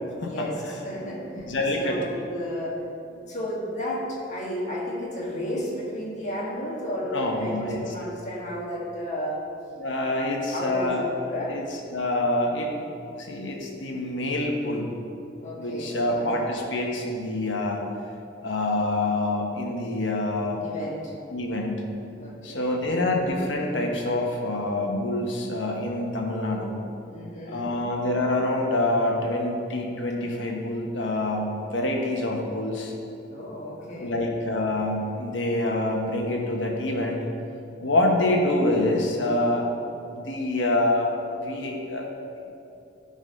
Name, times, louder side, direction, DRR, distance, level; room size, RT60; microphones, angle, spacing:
voice 1, 0.2-1.5 1.8-2.8 3.1-9.4 10.1-11.6 15.4-16.3 20.6-21.1 22.2-22.8 27.1-27.7 33.3-34.2, equal, 40° left, -4 dB, 1.5 m, -33 dB
voice 2, 1.5-2.0 7.1-7.8 9.8-11.0 11.5-11.6 11.9-12.8 13.2-14.9 15.6-17.8 18.4-20.6 21.3-21.9 22.4-26.8 27.5-32.9 33.7-37.2 37.8-39.7 40.1-42.1, left 1 dB, 85° left, 1 dB, 1.2 m, -26 dB
11.5 x 4.0 x 5.3 m, 2.6 s
head